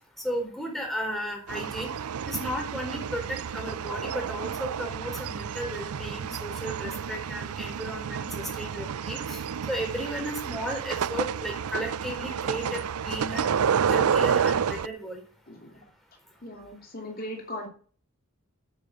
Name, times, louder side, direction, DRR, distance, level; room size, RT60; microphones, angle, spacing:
voice 1, 0.2-1.9 2.2-13.5 13.9-15.2 15.7-15.8, equal, ahead, 0 dB, 4.6 m, -34 dB
sound 1, 1.5-14.9, right 7 dB, 85° right, 0.5 m, -30 dB
voice 2, 15.5-15.8 16.4-17.7, left 1 dB, 40° left, 2 dB, 2.7 m, -38 dB
10.5 x 8.8 x 7.9 m, 0.43 s
head